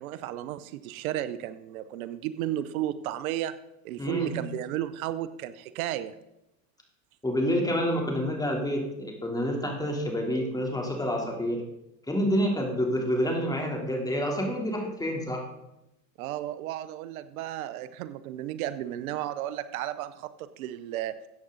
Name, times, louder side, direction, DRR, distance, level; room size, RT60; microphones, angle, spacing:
voice 1, 0.0-3.5 3.8-6.1 16.2-21.1, right 12 dB, 85° right, 14 dB, 0.8 m, -33 dB
voice 2, 4.0-4.3 7.2-11.6 12.1-15.4, equal, 10° left, 1 dB, 3.3 m, -28 dB
14.0 x 8.7 x 4.0 m, 0.88 s
supercardioid pair, 105°, 41 cm